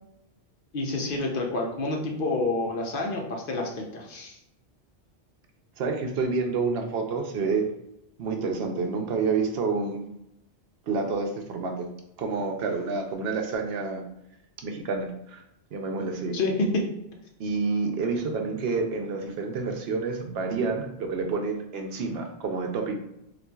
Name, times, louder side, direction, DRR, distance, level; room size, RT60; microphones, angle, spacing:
voice 1, 0.7-4.4 16.3-16.8, left 2 dB, 60° left, 1 dB, 0.8 m, -28 dB
voice 2, 5.8-7.7 8.2-10.1 10.9-11.9 12.2-14.0 14.6-15.4 15.7-16.4 17.4-22.9, right 4 dB, 70° right, 4 dB, 0.8 m, -28 dB
4.0 x 2.5 x 2.3 m, 0.82 s
omnidirectional pair, 1.1 m